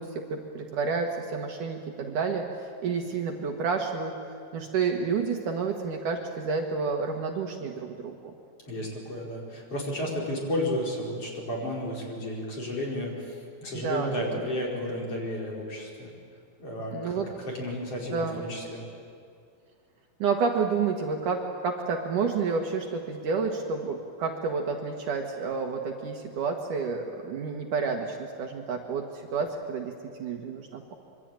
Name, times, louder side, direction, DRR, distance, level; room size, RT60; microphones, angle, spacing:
voice 1, 0.0-2.5 2.8-8.2 13.7-14.4 16.9-17.3 18.1-18.4 20.2-29.1 29.3-31.0, right 5 dB, 60° right, 3 dB, 2.8 m, -30 dB
voice 2, 8.7-16.1 16.6-17.1 17.5-18.8, left 1 dB, 35° left, -2 dB, 5.5 m, -32 dB
25.5 x 24.0 x 9.0 m, 2.3 s
omnidirectional pair, 4.5 m